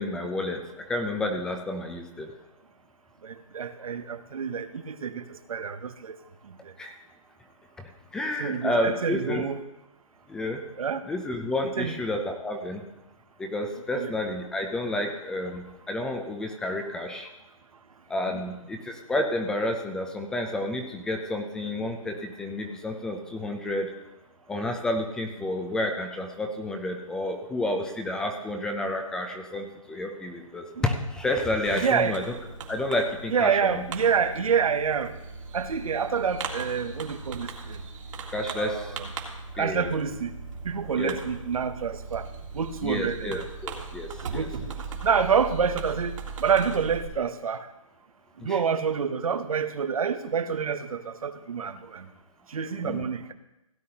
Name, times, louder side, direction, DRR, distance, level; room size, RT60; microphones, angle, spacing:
voice 1, 0.0-2.3 6.8-7.0 8.1-9.4 10.3-10.6 11.1-12.8 13.4-17.3 18.1-23.9 24.5-32.4 32.7-33.8 38.3-39.0 39.6-39.9 40.9-41.2 42.8-44.5 48.4-48.6 52.8-53.1, left 1 dB, 5° left, 4 dB, 0.4 m, -30 dB
voice 2, 3.2-6.2 8.4-9.6 10.8-11.0 11.6-11.9 13.9-14.1 18.3-18.4 30.8-30.9 31.7-32.2 33.3-35.1 35.5-37.8 38.5-39.1 39.6-40.3 40.6-42.3 42.5-43.5 44.3-44.6 45.0-46.1 46.4-47.7 48.4-52.1 52.5-53.3, right 6 dB, 90° right, 11 dB, 0.9 m, -27 dB
Fireworks, 31.7-47.1, right 4 dB, 65° right, 1.9 m, -39 dB
16.5 x 9.5 x 2.8 m, 0.93 s
hypercardioid pair, 160°, 18 cm